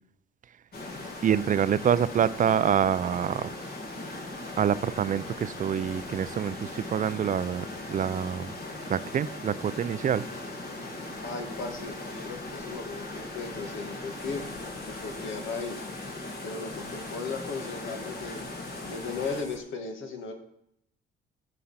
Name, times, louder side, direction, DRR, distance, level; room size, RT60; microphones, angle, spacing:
sound 1, 0.7-19.4, left 2 dB, 55° left, 2.3 m, -39 dB
voice 1, 1.2-3.5 4.6-8.5 8.9-10.3, right 8 dB, 40° right, 0.4 m, -26 dB
voice 2, 11.2-11.9 12.2-14.4 14.9-15.9 16.4-18.4 18.8-20.3, left 4 dB, 75° left, 1.9 m, -36 dB
sound 2, 14.2-19.6, left 1 dB, 15° left, 2.9 m, -50 dB
14.0 x 5.0 x 5.7 m
cardioid pair, 90°, 20 cm